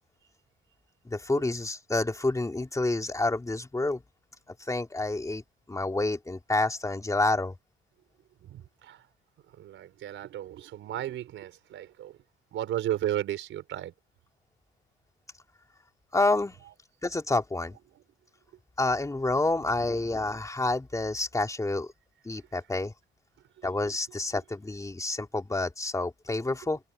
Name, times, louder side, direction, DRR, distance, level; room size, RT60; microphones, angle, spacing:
voice 1, 1.1-4.0 4.7-5.4 5.7-7.5 16.1-16.6 17.0-17.8 18.8-21.9 22.2-22.9 23.6-26.8, left 2 dB, 15° left, 3.0 m, -28 dB
voice 2, 8.4-9.0 9.6-12.2 12.5-13.9 23.6-23.7, right 12 dB, 80° right, 4.8 m, -34 dB
cardioid pair, 90°, 20 cm